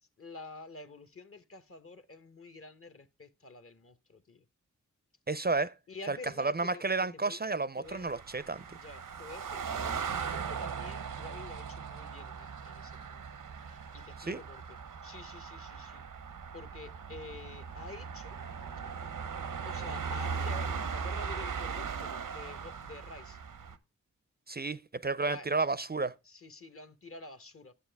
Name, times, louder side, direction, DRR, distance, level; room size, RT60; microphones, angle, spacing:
voice 1, 0.2-4.4 5.9-6.8 7.1-7.4 7.8-8.0 8.7-13.2 13.7-14.6 15.0-16.0 16.5-18.4 19.7-23.4 25.3-25.5 26.3-27.7, left 3 dB, 45° left, 1.0 m, -48 dB
voice 2, 5.3-5.7 6.1-8.6 14.2-14.4 24.5-26.1, right 3 dB, 30° right, 0.5 m, -31 dB
sound 1, 7.8-23.8, right 6 dB, 90° right, 0.8 m, -39 dB
9.7 x 7.7 x 3.4 m
cardioid pair, 45°, 31 cm